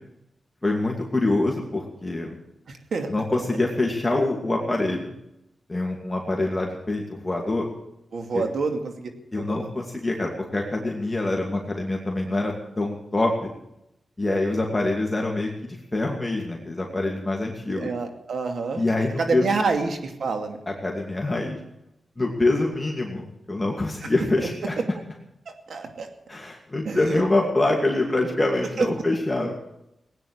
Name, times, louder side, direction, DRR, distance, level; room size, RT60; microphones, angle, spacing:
voice 1, 0.6-2.4 3.1-5.1 5.7-7.7 8.3-8.4 9.3-13.5 14.2-17.9 18.8-19.5 20.7-21.6 22.2-24.8 26.3-29.5, left 2 dB, 20° left, 0 dB, 2.5 m, -25 dB
voice 2, 2.7-3.1 8.1-9.1 9.4-9.7 14.3-14.6 17.7-18.8 19.2-20.6 24.0-24.1 24.4-24.7 25.7-26.1 26.9-27.2 28.8-29.1, right 4 dB, 80° right, 4 dB, 2.5 m, -28 dB
18.5 x 9.5 x 8.1 m, 0.83 s
wide cardioid pair, 85°, 0 cm